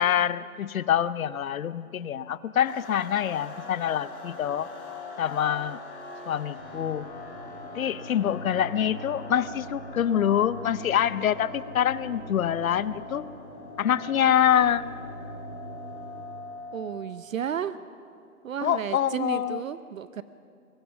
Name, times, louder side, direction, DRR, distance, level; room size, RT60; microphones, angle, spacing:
voice 1, 0.0-4.7 5.2-5.8 6.3-7.1 7.7-13.3 13.8-14.9 18.6-19.6, left 9 dB, 65° left, 16 dB, 0.8 m, -25 dB
sound 1, 2.6-17.2, left 2 dB, 45° left, 3.9 m, -43 dB
sound 2, 6.6-16.1, equal, 15° right, 6.0 m, -43 dB
voice 2, 16.7-17.8 18.4-20.2, right 8 dB, 60° right, 14 dB, 0.7 m, -33 dB
22.0 x 20.5 x 6.0 m, 2.5 s
hypercardioid pair, 165°, 45 cm